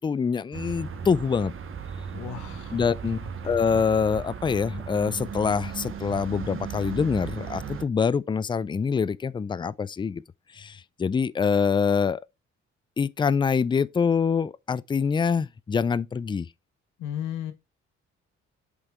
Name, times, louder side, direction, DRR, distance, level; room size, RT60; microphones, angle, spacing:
voice 1, 0.0-1.5 2.7-3.2 3.4-10.2 10.5-12.2 13.0-16.5, left 6 dB, 15° left, 0.3 m, -25 dB
sound 1, 0.5-7.9, right 7 dB, 45° right, 1.1 m, -36 dB
voice 2, 2.1-3.0 3.5-3.8 17.0-17.5, left 9 dB, 90° left, 1.1 m, -35 dB
8.1 x 3.4 x 3.5 m
cardioid pair, 75°, 29 cm